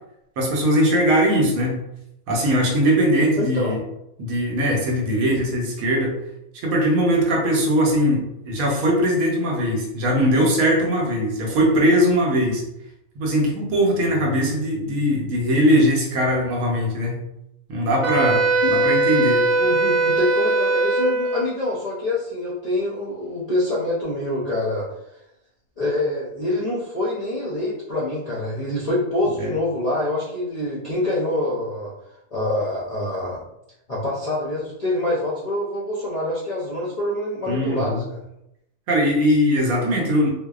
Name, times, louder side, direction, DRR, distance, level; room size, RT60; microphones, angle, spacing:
voice 1, 0.4-1.8 2.3-3.8 4.2-6.2 6.5-12.6 13.2-17.2 17.7-19.4 29.4-29.5 37.5-38.0 38.9-40.3, equal, 85° right, 0 dB, 1.1 m, -20 dB
voice 2, 3.4-3.8 18.6-18.7 19.6-24.9 25.8-31.9 32.3-33.4 33.9-38.2, left 1 dB, 55° left, -8 dB, 0.4 m, -25 dB
Wind instrument woodwind instrument, 18.0-21.5, right 2 dB, 65° right, 0.4 m, -20 dB
2.6 x 2.1 x 2.3 m, 0.83 s
omnidirectional pair, 1.4 m